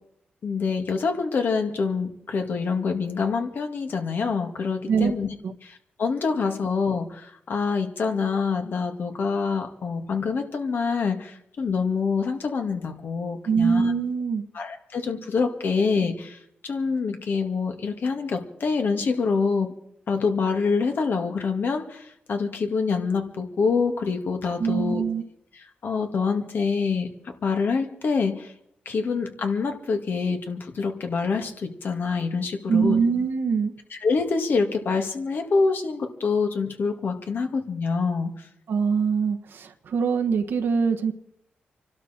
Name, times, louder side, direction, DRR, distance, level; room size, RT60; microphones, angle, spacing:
voice 1, 0.4-5.3 5.6-13.9 14.5-19.7 20.1-25.0 25.5-27.1 27.4-28.5 28.9-33.0 33.9-38.5, left 4 dB, 70° left, 4 dB, 2.2 m, -26 dB
voice 2, 13.5-14.4 24.6-25.2 32.7-33.7 38.7-41.1, right 5 dB, 80° right, 6 dB, 1.4 m, -23 dB
26.0 x 12.5 x 4.4 m, 0.73 s
cardioid pair, 60°, 4 cm